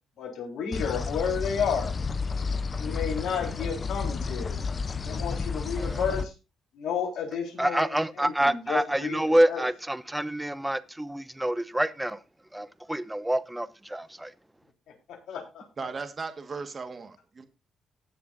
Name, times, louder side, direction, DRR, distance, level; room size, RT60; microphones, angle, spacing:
voice 1, 0.2-1.9 2.7-4.6 5.1-6.3 6.7-9.2 9.5-9.6 15.1-15.6, left 6 dB, 75° left, 4.1 m, -31 dB
sound 1, 0.7-6.2, left 4 dB, 35° left, 0.6 m, -31 dB
voice 2, 7.6-12.2 12.5-14.3, right 1 dB, 10° right, 0.7 m, -27 dB
voice 3, 15.8-17.4, right 4 dB, 35° right, 1.6 m, -37 dB
19.0 x 6.7 x 2.6 m
cardioid pair, 90°, 0 cm